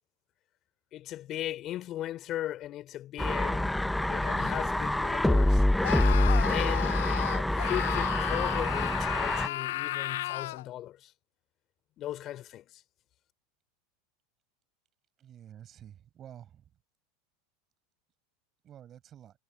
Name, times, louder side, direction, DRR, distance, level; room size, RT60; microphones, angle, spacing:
voice 1, 0.9-3.8 4.1-5.6 6.4-7.0 7.5-11.1 12.0-12.6, left 13 dB, 45° left, 3.1 m, -37 dB
sound 1, 3.2-9.5, left 1 dB, 5° left, 0.6 m, -26 dB
Screaming, 5.8-10.7, left 16 dB, 75° left, 0.5 m, -34 dB
voice 2, 15.2-16.6 18.6-19.3, right 10 dB, 35° right, 8.0 m, -50 dB
hypercardioid pair, 100°, 0 cm